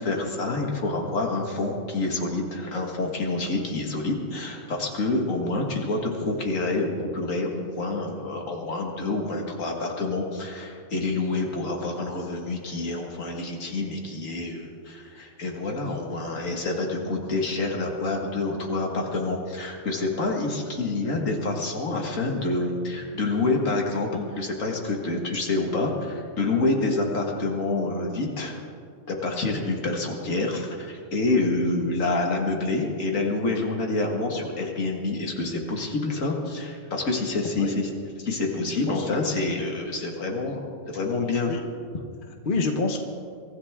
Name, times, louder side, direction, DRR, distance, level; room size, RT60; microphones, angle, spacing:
voice 1, 0.0-28.5 29.1-37.9 38.2-41.5, left 2 dB, 85° left, 1 dB, 2.2 m, -27 dB
voice 2, 38.7-39.3 41.5-41.6 41.9-43.0, left 3 dB, 45° left, 4 dB, 1.3 m, -29 dB
24.0 x 14.5 x 3.6 m, 2.3 s
omnidirectional pair, 1.3 m